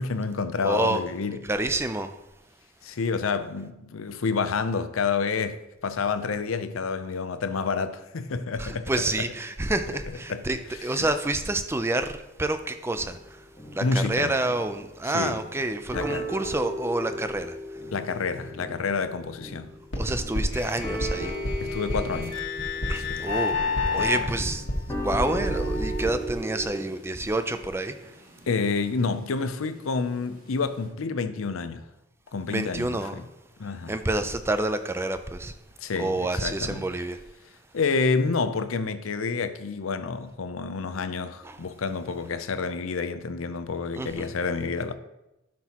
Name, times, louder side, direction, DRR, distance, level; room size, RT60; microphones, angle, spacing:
voice 1, 0.0-1.5 2.8-9.1 10.3-10.4 10.9-11.1 13.8-14.3 15.0-15.4 15.9-16.3 17.9-19.7 21.6-22.4 23.0-23.3 24.0-24.4 28.5-31.9 32.3-33.2 33.6-34.0 35.8-36.9 37.7-44.9, left 4 dB, 80° left, 0.6 m, -29 dB
voice 2, 0.6-1.0 1.5-2.1 8.6-13.4 13.7-17.6 20.0-21.3 22.9-23.6 23.9-24.6 25.0-28.1 32.5-33.2 33.9-35.5 36.0-37.2 41.4-41.6 43.9-44.3, right 2 dB, 10° right, 0.4 m, -28 dB
sound 1, 12.9-14.0 14.4-14.8 15.2-15.6 15.9-26.9, right 1 dB, 15° left, 1.5 m, -36 dB
sound 2, 19.9-26.1, left 3 dB, 60° left, 1.5 m, -29 dB
sound 3, 25.4-30.9, right 1 dB, 40° right, 2.1 m, -54 dB
12.0 x 6.1 x 2.9 m
head